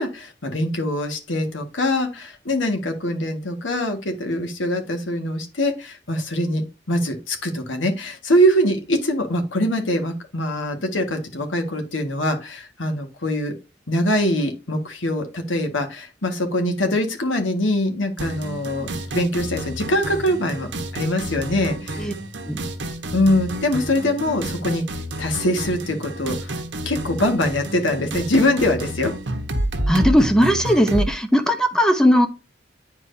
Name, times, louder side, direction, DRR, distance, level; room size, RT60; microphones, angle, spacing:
voice 1, 0.0-13.5 13.9-22.1 23.1-24.8 25.2-29.1, left 1 dB, 85° left, 5 dB, 1.7 m, -23 dB
sound 1, 18.2-31.1, right 1 dB, 70° right, 1.1 m, -29 dB
voice 2, 29.9-32.3, equal, 5° left, 7 dB, 0.8 m, -18 dB
9.7 x 4.6 x 2.7 m, 0.29 s
head